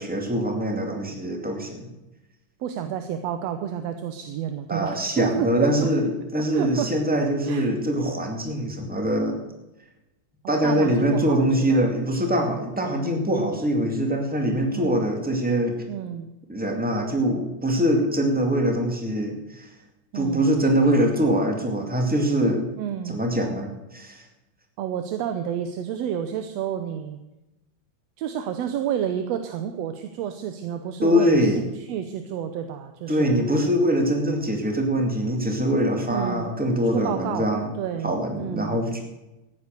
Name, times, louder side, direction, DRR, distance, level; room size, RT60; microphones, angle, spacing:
voice 1, 0.0-1.9 4.7-9.4 10.5-15.8 16.5-19.7 20.1-22.7 23.0-24.2 31.0-31.6 33.1-37.7 38.0-39.0, equal, 5° right, 3 dB, 1.8 m, -23 dB
voice 2, 2.6-5.9 6.4-6.9 7.4-7.7 10.4-11.4 11.7-11.8 12.3-12.6 14.7-15.1 15.9-16.3 20.1-20.5 22.8-23.2 24.8-27.2 28.2-33.3 36.1-36.5 36.9-37.5 37.8-38.8, right 9 dB, 70° right, 8 dB, 1.9 m, -30 dB
14.5 x 9.7 x 6.7 m, 0.97 s
omnidirectional pair, 3.3 m